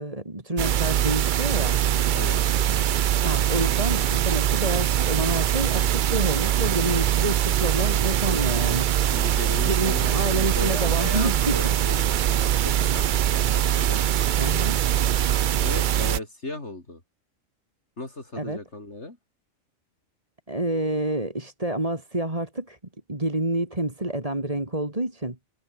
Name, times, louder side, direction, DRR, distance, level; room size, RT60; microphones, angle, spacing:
voice 1, 0.0-1.8 3.2-8.9 9.6-11.8 14.4-14.8 18.4-18.6 20.5-22.8 23.1-25.4, right 1 dB, 25° right, 3.5 m, -28 dB
sound 1, 0.6-16.2, right 11 dB, 70° right, 0.4 m, -23 dB
voice 2, 9.1-14.0 15.6-17.0 18.0-19.2, left 2 dB, 55° left, 4.7 m, -36 dB
omnidirectional pair, 1.4 m